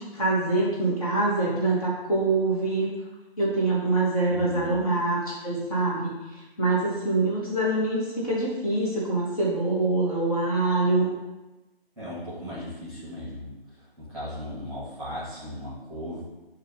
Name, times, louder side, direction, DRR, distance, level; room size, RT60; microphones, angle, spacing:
voice 1, 0.0-2.9 3.4-11.1, right 2 dB, 35° left, -6 dB, 1.1 m, -25 dB
voice 2, 4.3-4.7 12.0-16.2, left 1 dB, ahead, -12 dB, 1.3 m, -37 dB
7.1 x 2.8 x 2.7 m, 1.0 s
figure-of-eight pair, 150°, 31 cm